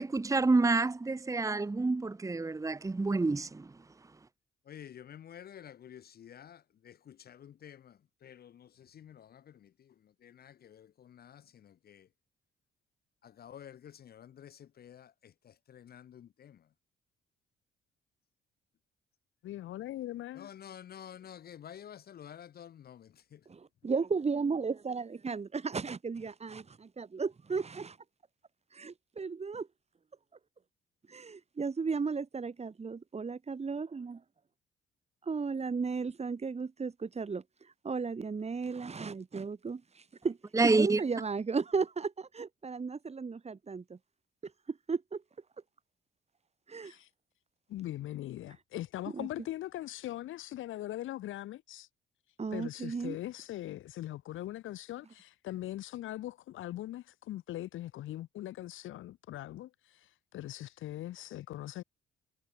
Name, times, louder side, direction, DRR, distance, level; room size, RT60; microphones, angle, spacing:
voice 1, 0.0-3.7 40.5-41.0, right 3 dB, 15° right, 1.1 m, -28 dB
voice 2, 4.7-6.6 7.3-7.8 8.2-8.5 9.0-9.3 10.4-10.5 11.2-11.3 13.4-13.8 14.1-14.5 14.8-15.0 15.9-16.0 20.4-23.0, left 9 dB, 50° left, 0.8 m, -49 dB
voice 3, 19.4-20.5 46.8-47.1 47.7-51.9 52.5-59.7 60.3-61.8, left 14 dB, 85° left, 3.5 m, -40 dB
voice 4, 23.5-28.0 28.7-29.7 31.1-34.2 35.3-37.4 37.8-40.4 40.6-44.0 44.7-45.2 46.7-46.9 49.1-49.3 52.4-53.2, right 5 dB, 30° right, 3.9 m, -35 dB
cardioid pair, 90°, 20 cm